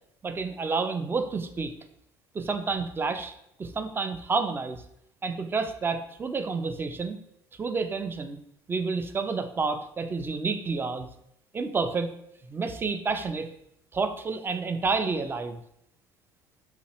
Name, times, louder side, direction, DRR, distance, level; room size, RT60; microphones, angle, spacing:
voice 1, 0.2-1.7 2.3-3.3 3.6-4.8 5.2-7.2 7.6-8.4 8.7-11.1 11.5-12.1 12.5-13.5 13.9-15.6, right 4 dB, 15° right, 7 dB, 0.3 m, -29 dB
2.9 x 2.3 x 2.8 m, 0.73 s
figure-of-eight pair, 60°, 13 cm